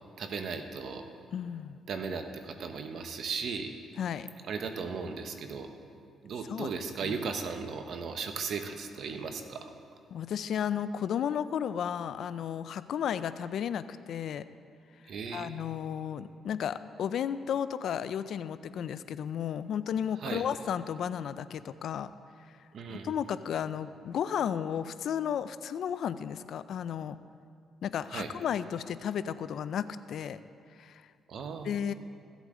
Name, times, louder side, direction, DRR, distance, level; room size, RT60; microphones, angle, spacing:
voice 1, 0.2-1.1 1.9-3.7 4.5-5.7 6.2-9.7 15.1-15.6 20.2-20.4 22.7-23.1 28.1-28.3 31.3-31.8, right 5 dB, 65° right, 6 dB, 1.0 m, -36 dB
voice 2, 1.3-1.8 4.0-4.3 6.5-6.7 7.0-7.2 10.1-14.4 15.3-22.1 22.9-27.2 27.8-30.4 30.8-31.0 31.6-31.9, left 8 dB, 70° left, 14 dB, 0.4 m, -33 dB
15.5 x 8.1 x 3.7 m, 2.3 s
cardioid pair, 90°, 0 cm